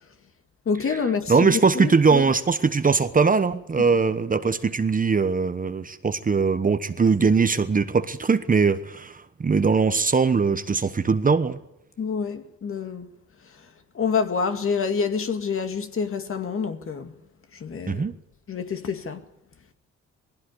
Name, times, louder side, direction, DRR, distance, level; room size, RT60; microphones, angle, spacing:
voice 1, 0.7-2.2 12.0-13.1 13.9-17.1 17.5-18.1 18.5-19.2, left 5 dB, 45° left, 2.1 m, -27 dB
voice 2, 1.3-11.6 17.9-18.1, right 5 dB, 25° right, 1.1 m, -21 dB
19.5 x 16.0 x 9.9 m
cardioid pair, 90°, 30 cm